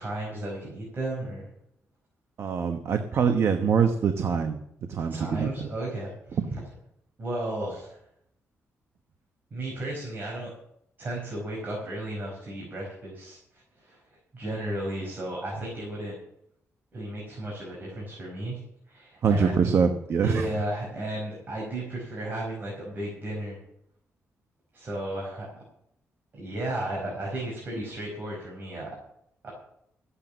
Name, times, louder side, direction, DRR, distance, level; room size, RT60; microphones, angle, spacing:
voice 1, 0.0-1.5 5.1-6.4 7.2-8.0 9.5-10.5 11.0-14.0 14.3-16.1 16.9-18.6 18.9-19.5 20.2-23.6 24.7-25.5 26.3-28.9 29.4-29.5, right 1 dB, 40° right, -3 dB, 5.0 m, -34 dB
voice 2, 2.4-4.6 4.9-5.7 6.3-6.5 19.2-20.5, right 6 dB, 60° right, 7 dB, 1.1 m, -24 dB
14.0 x 8.6 x 7.3 m, 0.77 s
wide cardioid pair, 135°, 5 cm